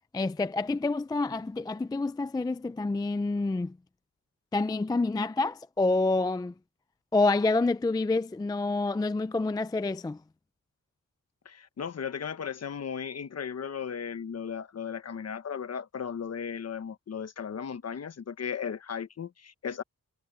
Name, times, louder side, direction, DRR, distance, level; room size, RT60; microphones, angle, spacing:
voice 1, 0.1-3.8 4.5-6.5 7.1-10.2, left 3 dB, 10° left, 0.3 m, -28 dB
voice 2, 11.4-19.8, left 7 dB, 50° left, 1.1 m, -36 dB
wide cardioid pair, 155°, 34 cm